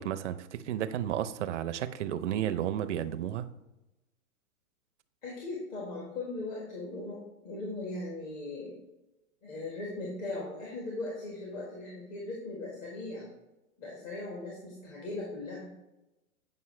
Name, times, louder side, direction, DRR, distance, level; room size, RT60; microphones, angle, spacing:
voice 1, 0.0-3.4, right 10 dB, 55° right, 0.6 m, -32 dB
voice 2, 5.2-8.8 9.4-13.3 13.8-15.7, left 2 dB, 35° left, 1.7 m, -39 dB
8.7 x 5.4 x 3.2 m
hypercardioid pair, 140°, 43 cm